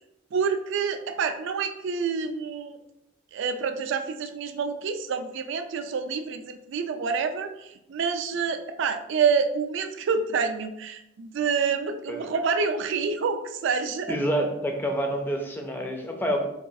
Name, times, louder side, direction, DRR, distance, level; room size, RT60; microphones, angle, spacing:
voice 1, 0.3-2.8 3.3-14.1, right 5 dB, 65° right, 7 dB, 0.3 m, -27 dB
voice 2, 14.1-16.4, equal, 10° left, 2 dB, 0.4 m, -27 dB
4.0 x 2.3 x 2.6 m, 0.86 s
head